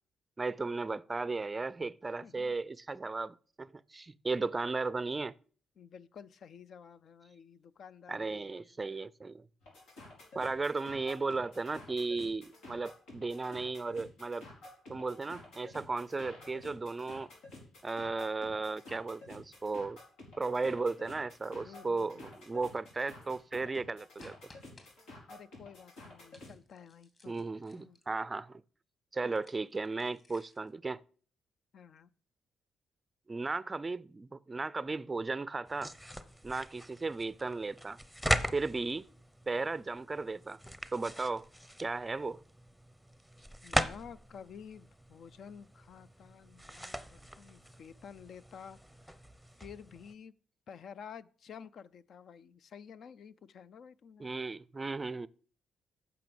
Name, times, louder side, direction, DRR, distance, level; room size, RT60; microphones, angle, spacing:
voice 1, 0.4-5.3 8.1-9.5 10.3-14.5 14.9-17.3 17.8-20.0 20.4-24.4 27.3-28.6 29.1-31.0 33.3-35.9 36.4-38.0 38.5-39.1 39.5-40.6 40.9-41.5 41.8-42.4 54.2-55.3, right 3 dB, 25° right, 0.4 m, -35 dB
voice 2, 2.2-2.5 5.8-8.7 21.6-22.3 25.3-27.3 27.7-28.0 31.7-32.1 43.6-48.8 49.6-50.3 50.7-54.3, left 7 dB, 60° left, 0.5 m, -51 dB
sound 1, 9.6-26.6, left 2 dB, 90° left, 4.5 m, -52 dB
sound 2, 24.2-24.9 26.3-28.2 29.3-30.7, left 2 dB, 30° left, 2.6 m, -59 dB
sound 3, 35.7-50.1, equal, 5° left, 0.8 m, -40 dB
9.4 x 5.9 x 7.0 m
cardioid pair, 90°, 0 cm